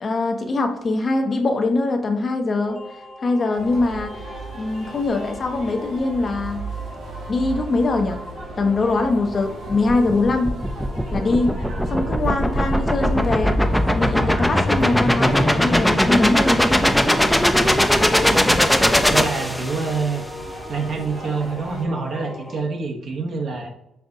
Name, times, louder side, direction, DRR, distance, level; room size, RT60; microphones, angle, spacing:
voice 1, 0.0-2.8 3.2-4.1 4.5-6.7 7.3-8.2 8.6-10.5 11.1-11.6 11.9-13.7 13.9-16.6, left 3 dB, 45° left, 5 dB, 0.6 m, -22 dB
sound 1, 2.7-22.6, left 1 dB, 30° left, 1.0 m, -40 dB
sound 2, 3.5-21.8, right 3 dB, 80° right, 1.0 m, -37 dB
sound 3, 9.7-20.0, equal, 5° left, 0.5 m, -19 dB
voice 2, 18.3-20.2 20.7-23.7, right 4 dB, 60° right, 2 dB, 0.8 m, -26 dB
5.4 x 2.5 x 2.6 m, 0.83 s
hypercardioid pair, 45°, 0 cm